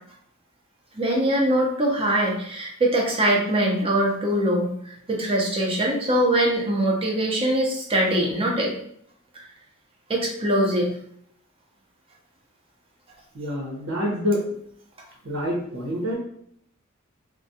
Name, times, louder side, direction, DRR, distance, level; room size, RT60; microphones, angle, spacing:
voice 1, 0.9-8.7 10.1-11.0, right 1 dB, 25° right, -1 dB, 0.5 m, -22 dB
voice 2, 13.3-14.4 15.2-16.2, equal, 70° right, -2 dB, 0.8 m, -26 dB
2.3 x 2.2 x 2.7 m, 0.67 s
head